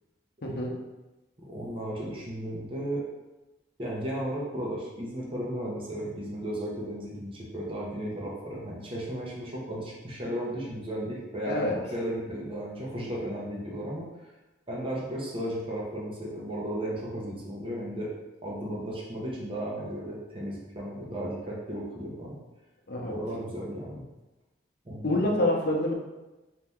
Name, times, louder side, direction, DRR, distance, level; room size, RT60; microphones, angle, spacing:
voice 1, 0.4-0.7 11.4-11.7 22.9-23.1 25.0-25.9, left 1 dB, 60° left, -1 dB, 0.8 m, -26 dB
voice 2, 1.5-3.0 3.8-11.6 11.9-14.1 14.7-18.1 18.4-22.4 23.1-24.0 24.8-25.2, right 1 dB, 30° right, -5 dB, 0.9 m, -34 dB
4.1 x 2.9 x 3.6 m, 1.1 s
head